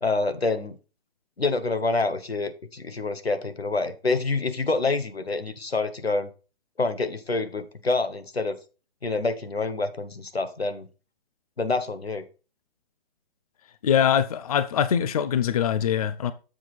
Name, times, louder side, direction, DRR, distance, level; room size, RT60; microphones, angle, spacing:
voice 1, 0.0-0.8 1.4-6.3 6.8-8.6 9.0-10.9 11.6-12.3, left 3 dB, 85° left, 1.2 m, -27 dB
voice 2, 13.8-16.3, left 8 dB, 40° left, 0.5 m, -23 dB
7.4 x 5.8 x 4.2 m
figure-of-eight pair, 130°, 30 cm